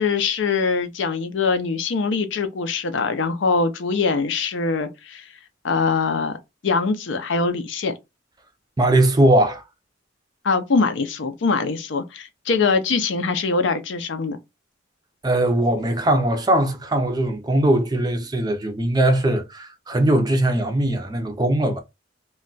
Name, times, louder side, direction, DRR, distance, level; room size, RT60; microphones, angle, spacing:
voice 1, 0.0-5.2 5.6-6.3 6.6-7.9 10.4-14.4, left 4 dB, 70° left, 0.5 m, -23 dB
voice 2, 8.8-9.6 15.2-21.8, right 1 dB, 20° right, 0.5 m, -20 dB
2.3 x 2.2 x 3.8 m
head